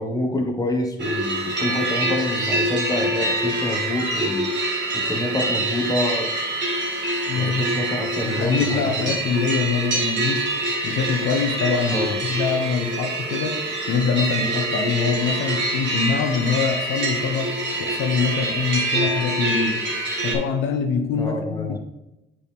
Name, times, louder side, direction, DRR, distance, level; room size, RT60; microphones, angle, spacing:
voice 1, 0.0-6.3 7.3-9.1 11.9-12.2 21.2-21.8, left 1 dB, 20° left, 2 dB, 1.4 m, -27 dB
sound 1, 1.0-20.4, right 2 dB, 65° right, 2.2 m, -25 dB
voice 2, 7.3-7.7 8.2-17.5 17.8-19.8 20.2-21.8, left 6 dB, 80° left, 5 dB, 0.8 m, -24 dB
8.4 x 4.9 x 3.5 m, 0.94 s
cardioid pair, 90°, 20 cm